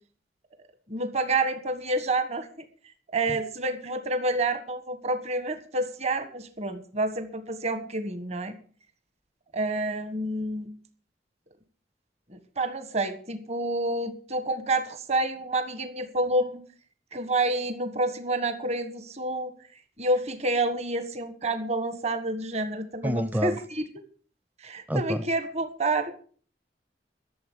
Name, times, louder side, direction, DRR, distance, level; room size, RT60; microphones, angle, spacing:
voice 1, 0.9-2.5 3.1-8.5 9.5-10.7 12.3-16.6 17.1-19.5 20.0-23.8 24.6-26.1, right 2 dB, 40° right, 9 dB, 1.5 m, -28 dB
voice 2, 23.0-23.6 24.9-25.2, equal, 10° right, 13 dB, 0.6 m, -28 dB
12.5 x 7.2 x 9.3 m, 0.44 s
head